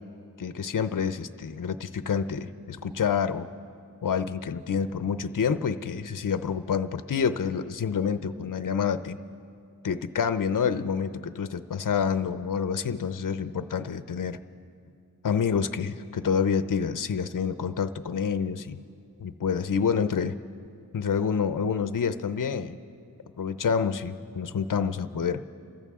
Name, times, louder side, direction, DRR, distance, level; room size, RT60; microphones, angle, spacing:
voice 1, 0.4-3.5 4.0-9.2 9.8-14.4 15.2-18.8 19.2-20.4 20.9-22.8 23.4-25.4, left 6 dB, 55° left, 12 dB, 0.6 m, -28 dB
27.5 x 14.5 x 3.6 m, 2.5 s
wide cardioid pair, 40°, 37 cm